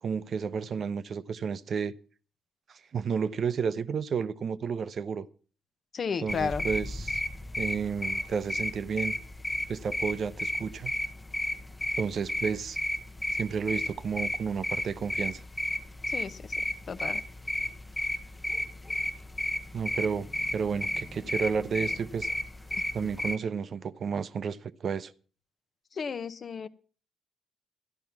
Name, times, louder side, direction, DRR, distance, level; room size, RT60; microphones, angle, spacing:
voice 1, 0.0-1.9 2.7-5.3 6.2-7.2 7.6-9.1 9.7-10.9 12.0-12.8 13.3-15.4 19.7-20.3 20.5-22.3 22.9-25.1, right 6 dB, 55° right, 0.7 m, -31 dB
voice 2, 5.9-6.7 16.1-16.5 16.9-17.2 26.0-26.7, left 6 dB, 45° left, 0.8 m, -33 dB
sound 1, 6.3-23.4, left 1 dB, 15° left, 0.9 m, -33 dB
12.5 x 11.0 x 5.9 m
cardioid pair, 90°, 0 cm